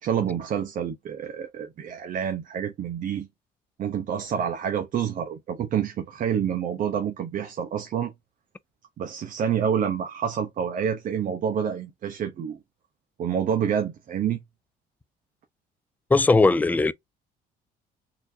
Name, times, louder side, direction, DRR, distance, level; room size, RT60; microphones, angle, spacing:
voice 1, 0.0-3.3 3.8-8.1 9.0-12.6 13.2-14.4, right 8 dB, 50° right, 0.8 m, -28 dB
voice 2, 16.1-16.9, left 3 dB, 10° left, 0.3 m, -18 dB
4.3 x 2.7 x 2.7 m
cardioid pair, 110°, 17 cm